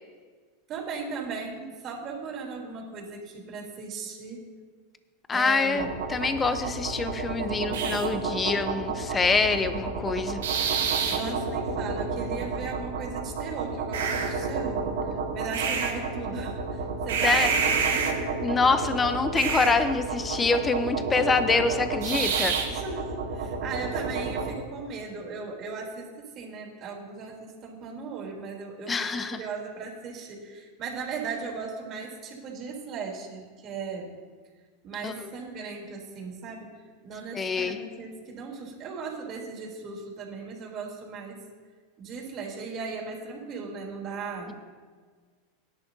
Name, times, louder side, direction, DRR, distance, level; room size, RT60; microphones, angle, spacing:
voice 1, 0.7-4.5 5.3-5.9 11.1-18.2 22.7-34.1 34.8-36.7 37.0-41.4 42.0-44.5, right 5 dB, 40° right, -1 dB, 3.8 m, -37 dB
voice 2, 5.3-10.4 17.2-17.5 18.4-22.5 28.9-29.4 35.0-35.1 37.3-37.8, left 4 dB, 20° left, 9 dB, 1.0 m, -25 dB
sound 1, 5.7-24.5, right 5 dB, 75° right, 2.7 m, -29 dB
18.0 x 10.5 x 2.9 m, 1.5 s
hypercardioid pair, 95°, 0 cm